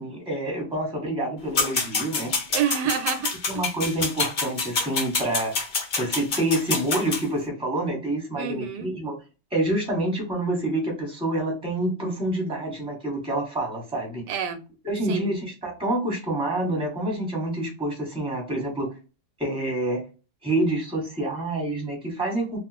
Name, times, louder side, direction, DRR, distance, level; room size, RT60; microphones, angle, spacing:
voice 1, 0.0-2.3 3.5-5.6 6.0-9.1 9.5-14.2 14.8-18.9 19.4-20.0 20.4-22.6, right 1 dB, 5° right, 1.1 m, -27 dB
sound 1, 1.5-7.2, left 4 dB, 70° left, 0.4 m, -27 dB
voice 2, 2.5-3.3 8.4-8.9 14.3-14.6 15.1-15.3, right 9 dB, 80° right, 1.2 m, -27 dB
2.8 x 2.4 x 4.1 m
omnidirectional pair, 1.8 m